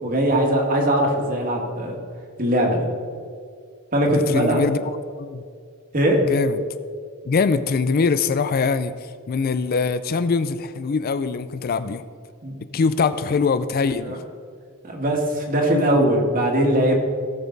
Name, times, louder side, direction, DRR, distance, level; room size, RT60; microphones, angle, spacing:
voice 1, 0.0-2.0 2.4-2.9 3.9-4.6 5.9-6.2 12.4-12.8 14.0-14.2 14.8-17.0, right 1 dB, 40° right, 1 dB, 1.9 m, -20 dB
voice 2, 4.1-5.4 6.3-6.6 7.3-8.9 9.3-12.0 12.7-14.1 15.9-16.0, left 5 dB, 45° left, 13 dB, 0.4 m, -23 dB
17.5 x 7.2 x 4.0 m, 2.2 s
head